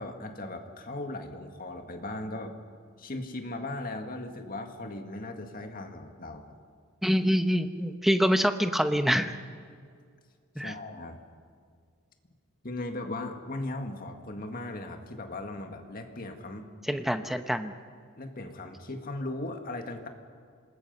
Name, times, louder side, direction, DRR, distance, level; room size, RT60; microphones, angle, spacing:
voice 1, 0.0-2.6 3.0-6.6 10.6-11.2 12.6-16.7 18.2-20.1, left 2 dB, 45° left, 5 dB, 1.8 m, -38 dB
voice 2, 7.0-9.4 10.6-10.7 16.9-17.7, equal, ahead, 8 dB, 0.8 m, -25 dB
26.5 x 20.0 x 5.4 m, 2.1 s
head